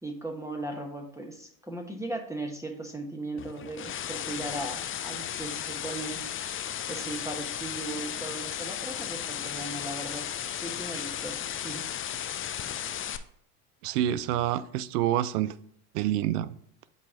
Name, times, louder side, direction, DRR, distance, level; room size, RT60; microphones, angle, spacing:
voice 1, 0.0-6.5 6.9-11.4 11.6-11.9, right 2 dB, 5° right, 2 dB, 1.2 m, -38 dB
sound 1, 3.4-13.2, left 10 dB, 25° left, 0.5 m, -35 dB
voice 2, 13.8-15.5 15.9-16.5, right 12 dB, 75° right, 16 dB, 0.6 m, -27 dB
7.6 x 4.1 x 3.7 m, 0.65 s
hypercardioid pair, 75°, 47 cm